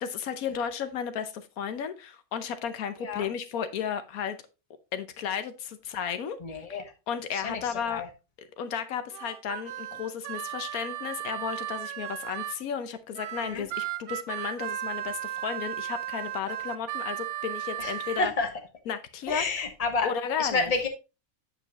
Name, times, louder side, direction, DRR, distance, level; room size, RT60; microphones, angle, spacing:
voice 1, 0.0-4.4 4.9-6.4 6.7-6.8 7.1-8.0 8.6-18.3 18.9-19.4 20.0-20.7, left 7 dB, 85° left, 1.2 m, -33 dB
voice 2, 6.4-6.8 7.3-7.6 7.9-8.1 13.4-13.6 17.8-17.9 18.2-18.5 19.3-20.1 20.4-20.9, left 3 dB, 30° left, 1.2 m, -29 dB
Harmonica, 9.1-12.6 13.1-18.3, right 12 dB, 85° right, 1.0 m, -35 dB
8.0 x 6.9 x 3.0 m
omnidirectional pair, 1.5 m